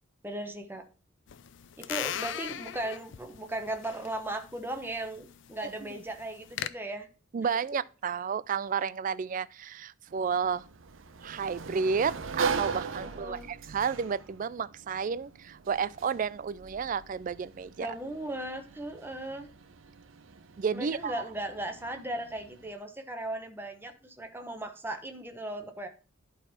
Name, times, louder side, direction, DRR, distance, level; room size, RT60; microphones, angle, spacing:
voice 1, 0.2-0.9 1.8-7.1 13.0-13.5 17.8-19.5 20.7-25.9, right 1 dB, 10° right, 1.1 m, -37 dB
sound 1, 1.3-6.7, left 9 dB, 65° left, 0.5 m, -39 dB
voice 2, 7.3-10.6 11.2-17.9 20.6-21.2, right 6 dB, 40° right, 0.3 m, -31 dB
Sliding door, 10.1-22.7, right 5 dB, 80° right, 0.7 m, -40 dB
11.5 x 4.0 x 4.2 m
head